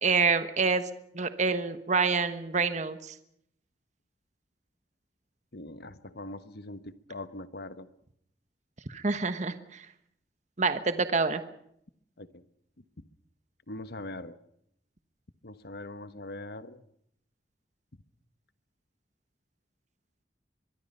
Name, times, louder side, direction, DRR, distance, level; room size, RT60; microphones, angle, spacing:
voice 1, 0.0-0.9 1.1-3.1 8.9-9.9 10.6-11.4, right 4 dB, 40° right, 10 dB, 1.2 m, -27 dB
voice 2, 5.5-7.9 12.2-12.3 13.7-14.4 15.4-16.8, left 2 dB, 65° left, 12 dB, 1.3 m, -41 dB
23.0 x 23.0 x 5.6 m, 0.71 s
head